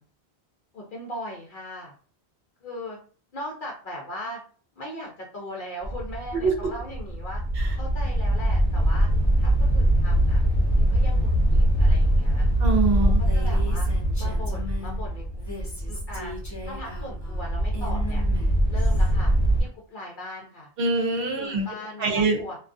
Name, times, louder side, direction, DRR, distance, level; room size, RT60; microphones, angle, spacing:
voice 1, 0.7-1.9 2.6-3.0 3.3-4.4 4.8-7.4 7.7-9.1 9.4-10.4 10.7-12.4 13.0-13.9 14.2-15.2 15.9-16.3 16.6-18.2 18.7-19.3 19.6-20.7 21.4-22.6, left 1 dB, 60° left, -2 dB, 0.7 m, -38 dB
sound 1, 5.8-19.6, right 1 dB, 40° left, 1.0 m, -23 dB
voice 2, 6.3-6.7 7.6-7.7 12.6-13.2 20.8-21.7 22.0-22.4, right 3 dB, 70° right, 3 dB, 0.8 m, -24 dB
Female speech woman speaking, 13.1-15.0 15.3-19.1, left 2 dB, 20° left, 0.5 m, -39 dB
2.3 x 2.3 x 2.5 m, 0.42 s
omnidirectional pair, 1.1 m